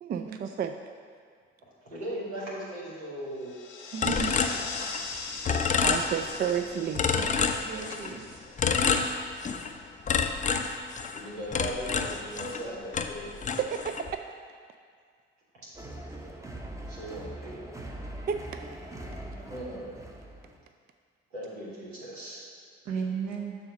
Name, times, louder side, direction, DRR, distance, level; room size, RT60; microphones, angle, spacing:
voice 1, 0.0-0.8 5.8-7.1 13.6-14.0 18.3-18.4, right 8 dB, 30° right, 7 dB, 0.4 m, -31 dB
voice 2, 1.8-3.5 5.3-5.4 11.1-13.5 15.5-15.7 16.9-17.7 19.5-19.9 21.3-22.4, right 1 dB, 85° right, -6 dB, 1.6 m, -38 dB
sound 1, 3.4-9.2, left 4 dB, 75° left, 0.8 m, -41 dB
voice 3, 3.9-4.4 7.2-8.4 22.8-23.6, right 6 dB, 60° right, 0 dB, 1.2 m, -35 dB
sound 2, 4.0-5.2 5.4-6.6 6.9-8.1 8.6-9.7 10.1-12.7 12.9-14.1, left 5 dB, 25° left, 0.5 m, -28 dB
sound 3, 15.7-20.6, right 1 dB, 10° right, 0.8 m, -42 dB
6.9 x 3.8 x 6.1 m, 2.1 s
figure-of-eight pair, 45°, 31 cm